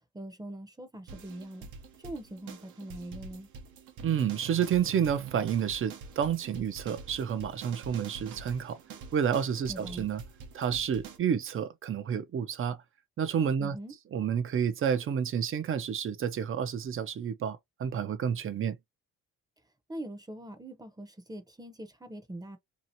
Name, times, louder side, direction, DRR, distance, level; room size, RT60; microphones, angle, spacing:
voice 1, 0.1-1.7 2.0-3.5 9.7-10.1 13.6-13.9 19.9-22.6, right 1 dB, 15° right, 0.7 m, -42 dB
sound 1, 1.1-11.2, right 6 dB, 80° right, 1.0 m, -46 dB
voice 2, 4.0-8.8 9.1-10.2 10.5-12.8 13.2-13.8 14.1-18.8, right 8 dB, 45° right, 0.6 m, -30 dB
2.9 x 2.5 x 2.7 m
cardioid pair, 90°, 30 cm